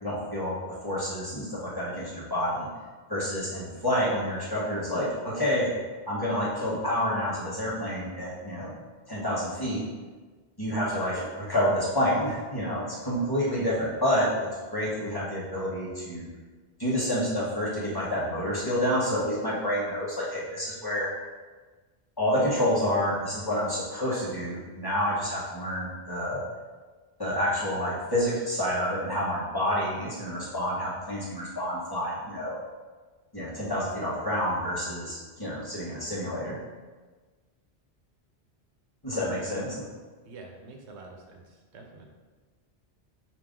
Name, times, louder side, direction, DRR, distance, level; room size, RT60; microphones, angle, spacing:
voice 1, 0.0-2.7 3.1-5.7 6.1-8.7 9.1-9.9 10.6-14.3 14.7-16.2 16.8-21.1 22.2-26.4 27.2-32.6 33.3-36.6 39.0-39.8, equal, 20° left, -7 dB, 1.0 m, -28 dB
voice 2, 39.1-39.7 40.2-42.0, right 3 dB, 80° right, 2 dB, 0.9 m, -47 dB
5.2 x 2.6 x 3.6 m, 1.4 s
omnidirectional pair, 1.1 m